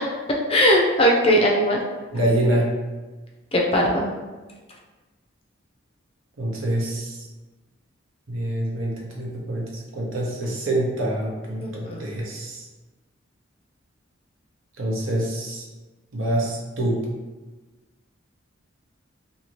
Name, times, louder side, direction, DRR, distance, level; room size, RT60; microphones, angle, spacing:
voice 1, 0.5-1.8 3.5-4.1 11.6-12.0, equal, 30° left, -1 dB, 0.4 m, -19 dB
voice 2, 2.1-2.7 6.4-7.2 8.3-9.6 9.9-12.6 14.8-15.6 16.1-17.0, right 1 dB, 85° right, -2 dB, 0.8 m, -25 dB
2.7 x 2.7 x 3.0 m, 1.2 s
head